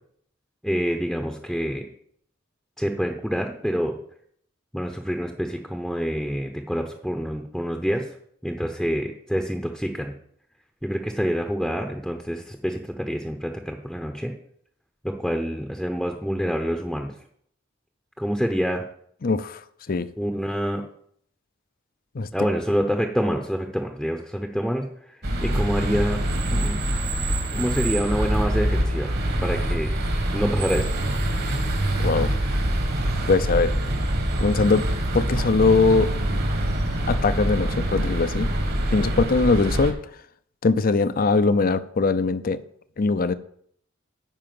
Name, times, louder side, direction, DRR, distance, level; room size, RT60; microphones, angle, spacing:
voice 1, 0.6-1.8 2.8-4.0 4.7-8.2 8.4-10.1 10.8-14.3 15.0-17.1 18.2-18.8 20.2-20.8 22.3-26.2 26.5-26.8 27.5-29.1 29.4-29.9 30.3-30.9, equal, ahead, 4 dB, 0.8 m, -27 dB
voice 2, 19.2-19.6 19.9-20.1 22.1-22.3 32.0-32.3 33.3-33.7 34.4-34.9 35.1-36.1 37.1-38.5 38.9-40.0 40.6-42.6 43.0-43.3, left 3 dB, 45° left, 14 dB, 0.6 m, -21 dB
sound 1, 25.2-39.9, right 1 dB, 55° right, 1.7 m, -25 dB
10.0 x 4.8 x 7.7 m, 0.66 s
head